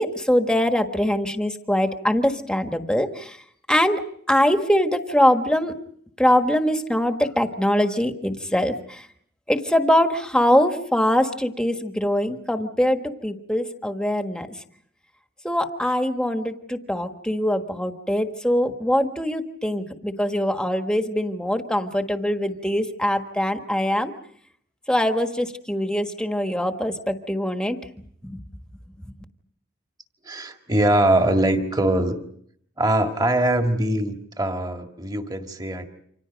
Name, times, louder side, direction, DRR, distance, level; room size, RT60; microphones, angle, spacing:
voice 1, 0.0-3.4 3.7-4.0 4.3-5.7 6.2-9.0 9.5-14.5 15.4-24.1 24.9-27.8 28.2-28.4, equal, 5° left, 6 dB, 1.4 m, -22 dB
voice 2, 30.2-32.2 32.8-35.9, right 1 dB, 20° right, 5 dB, 1.9 m, -22 dB
29.0 x 26.0 x 5.2 m, 0.65 s
head